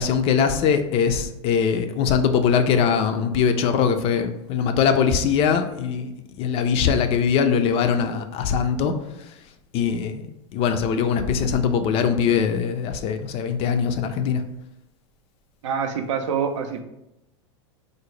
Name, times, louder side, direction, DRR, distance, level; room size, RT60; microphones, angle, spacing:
voice 1, 0.0-6.1 6.4-8.9 9.7-14.4, left 6 dB, 40° left, 8 dB, 0.4 m, -21 dB
voice 2, 15.6-16.8, right 6 dB, 75° right, 6 dB, 0.5 m, -25 dB
3.8 x 2.1 x 3.1 m, 0.87 s
hypercardioid pair, 100°, 16 cm